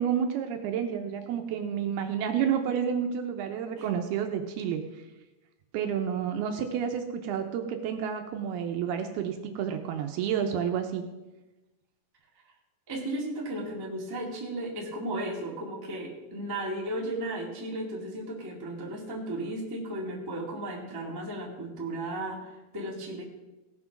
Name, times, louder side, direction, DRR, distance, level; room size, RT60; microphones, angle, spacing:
voice 1, 0.0-4.8 5.7-11.0, right 8 dB, 75° right, 5 dB, 2.5 m, -30 dB
voice 2, 12.9-23.2, right 1 dB, 10° right, -2 dB, 0.9 m, -35 dB
17.5 x 6.0 x 6.0 m, 1.1 s
omnidirectional pair, 5.0 m